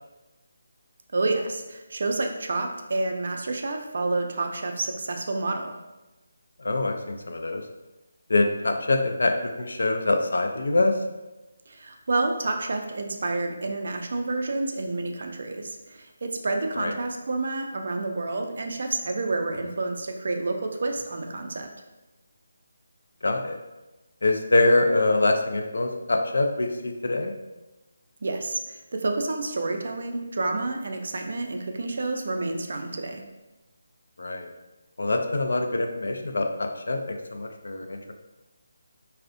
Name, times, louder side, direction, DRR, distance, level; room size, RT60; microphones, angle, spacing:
voice 1, 1.1-5.7 11.7-21.7 28.2-33.3, right 2 dB, 55° right, 4 dB, 0.3 m, -29 dB
voice 2, 6.6-7.6 8.3-10.9 16.8-16.9 23.2-23.6 24.2-27.3 34.2-34.5 35.0-38.1, left 2 dB, 75° left, 4 dB, 0.3 m, -24 dB
2.4 x 2.0 x 2.5 m, 1.1 s
hypercardioid pair, 175°, 0 cm